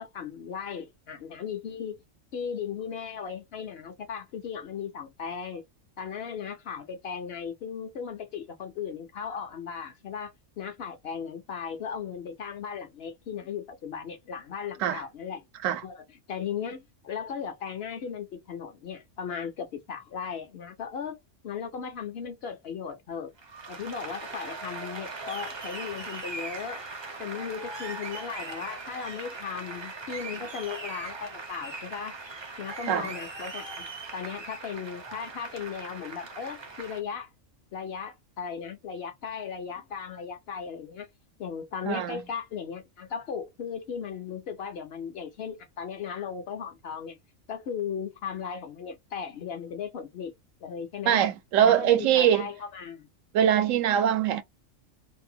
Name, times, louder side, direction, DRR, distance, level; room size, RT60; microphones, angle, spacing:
voice 1, 0.0-2.0 2.3-5.6 6.0-15.4 15.8-21.2 21.4-23.3 23.7-26.8 27.2-32.2 32.6-37.3 37.7-41.1 41.4-47.2 47.5-50.3 50.6-51.2 51.6-53.1, left 7 dB, 60° left, 0.7 m, -37 dB
Applause, 23.4-37.0, right 3 dB, 40° right, 0.4 m, -40 dB
voice 2, 41.8-42.2 51.1-52.5 53.3-54.4, right 10 dB, 85° right, 1.0 m, -23 dB
2.6 x 2.1 x 2.6 m
omnidirectional pair, 1.3 m